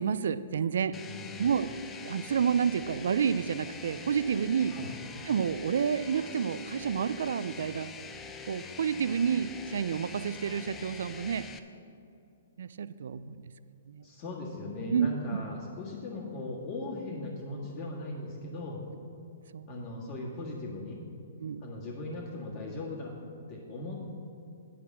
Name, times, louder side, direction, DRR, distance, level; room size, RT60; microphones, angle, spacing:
voice 1, 0.0-1.0 1.4-1.7 2.0-4.8 5.2-7.9 8.4-11.5 12.6-13.5 13.9-14.1 14.9-15.1 19.5-19.7 21.4-21.6, right 7 dB, 65° right, 15 dB, 0.3 m, -29 dB
sound 1, 0.9-11.6, left 5 dB, 20° left, 0.5 m, -44 dB
voice 2, 1.1-1.5 4.7-4.9 14.0-18.8 19.7-21.0 21.6-23.2 23.5-24.1, left 2 dB, 40° left, -7 dB, 1.8 m, -38 dB
10.0 x 4.7 x 7.2 m, 2.5 s
hypercardioid pair, 125°, 0 cm